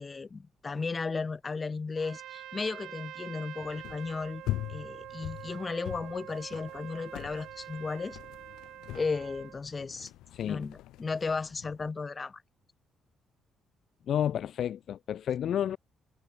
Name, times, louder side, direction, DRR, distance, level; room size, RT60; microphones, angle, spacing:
voice 1, 0.0-4.4 4.7-8.2 9.0-10.1 10.5-12.4, left 4 dB, 30° left, 2.5 m, -35 dB
Trumpet, 2.0-9.6, right 13 dB, 80° right, 2.8 m, -46 dB
sound 1, 3.6-11.9, left 15 dB, 90° left, 4.0 m, -42 dB
voice 2, 10.3-10.7 14.1-15.8, left 10 dB, 65° left, 0.4 m, -30 dB
cardioid pair, 90°, 0 cm